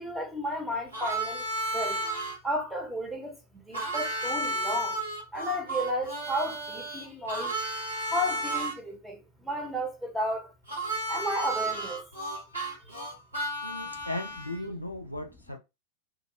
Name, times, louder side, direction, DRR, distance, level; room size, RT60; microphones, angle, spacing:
voice 1, 0.0-1.5 1.7-2.0 2.4-5.0 5.3-7.6 8.1-10.5 11.1-12.1 12.8-13.0 13.9-14.0, equal, 5° right, 0.7 m, -33 dB
Harmonica, 0.9-2.4 3.7-8.7 10.7-14.6, right 1 dB, 85° right, 1.2 m, -33 dB
voice 2, 13.6-15.6, left 1 dB, 90° left, 0.4 m, -37 dB
2.3 x 2.0 x 3.0 m
figure-of-eight pair, 90°, 0 cm